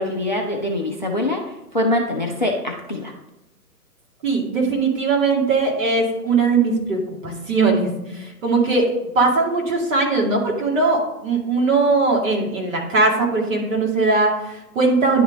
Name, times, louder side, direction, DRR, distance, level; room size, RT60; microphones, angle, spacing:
voice 1, 0.0-3.1, left 1 dB, 35° left, 2 dB, 0.4 m, -24 dB
voice 2, 4.2-15.2, right 3 dB, 50° right, -1 dB, 2.2 m, -20 dB
10.0 x 3.7 x 3.7 m, 0.92 s
figure-of-eight pair, 135°, 48 cm